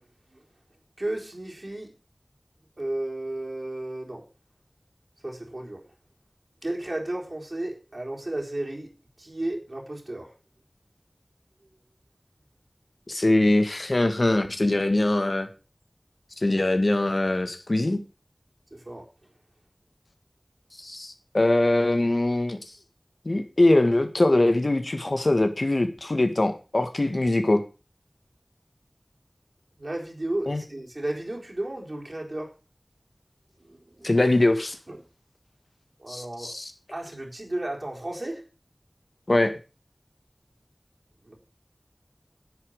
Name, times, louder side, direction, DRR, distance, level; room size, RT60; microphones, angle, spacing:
voice 1, 1.0-1.9 2.8-4.2 5.2-5.8 6.6-8.9 9.2-10.3 18.7-19.1 29.8-32.5 33.7-34.1 34.9-35.0 36.0-36.5 36.9-38.4 41.3-41.4, right 1 dB, 60° right, 0 dB, 4.0 m, -33 dB
voice 2, 13.1-15.5 16.4-18.0 20.8-22.6 23.2-27.6 30.5-30.6 34.0-34.8 36.1-36.7 39.3-39.5, left 2 dB, 65° left, 8 dB, 1.7 m, -22 dB
10.5 x 8.3 x 6.5 m, 0.32 s
wide cardioid pair, 45°, 0 cm